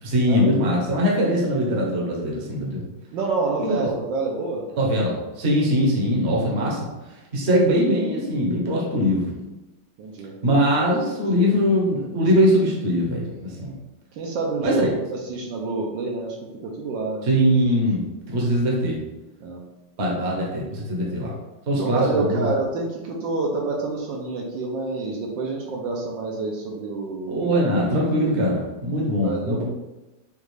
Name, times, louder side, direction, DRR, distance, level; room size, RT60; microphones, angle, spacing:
voice 1, 0.0-2.9 3.6-3.9 4.8-6.9 7.3-9.4 10.4-13.7 14.6-14.9 17.2-19.0 20.0-21.3 21.7-22.5 27.3-29.6, equal, 45° right, -3 dB, 1.0 m, -21 dB
voice 2, 3.1-4.7 10.0-10.6 11.3-11.5 13.6-13.7 14.1-16.4 16.6-17.4 19.4-19.6 21.0-21.2 21.8-27.6 29.2-29.6, right 3 dB, 75° right, -1 dB, 1.3 m, -28 dB
5.3 x 2.4 x 3.2 m, 1.1 s
omnidirectional pair, 2.2 m